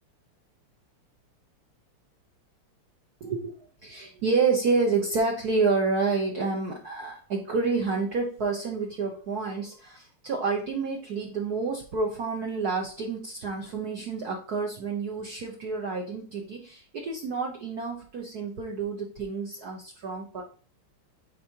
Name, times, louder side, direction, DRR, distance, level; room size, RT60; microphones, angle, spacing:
voice 1, 3.2-3.5 3.8-20.4, right 4 dB, 55° right, 0 dB, 1.2 m, -29 dB
9.4 x 4.1 x 2.8 m, 0.40 s
omnidirectional pair, 2.4 m